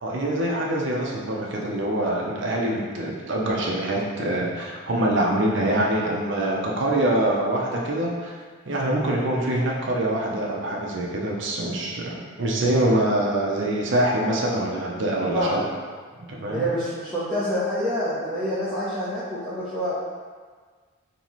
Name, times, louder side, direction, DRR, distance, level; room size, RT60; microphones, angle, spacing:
voice 1, 0.0-8.4 8.7-15.6 16.2-16.7, right 1 dB, 55° right, -3 dB, 0.7 m, -24 dB
voice 2, 15.3-15.7 16.5-19.9, equal, ahead, -13 dB, 0.7 m, -27 dB
4.1 x 3.1 x 3.1 m, 1.5 s
head